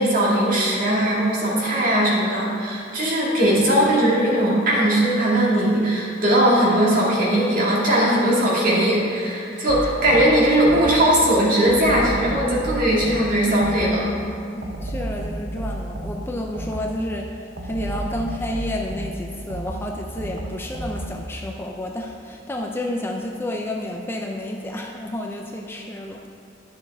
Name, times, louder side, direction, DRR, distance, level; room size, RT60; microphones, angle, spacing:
voice 1, 0.0-14.1, right 1 dB, 45° right, -5 dB, 2.1 m, -19 dB
sound 1, 9.7-11.2 11.7-14.2 14.6-17.1 17.6-21.3, right 1 dB, 85° right, 1.0 m, -32 dB
voice 2, 14.5-26.2, left 1 dB, 10° left, 1 dB, 0.5 m, -30 dB
11.5 x 6.7 x 3.5 m, 2.4 s
head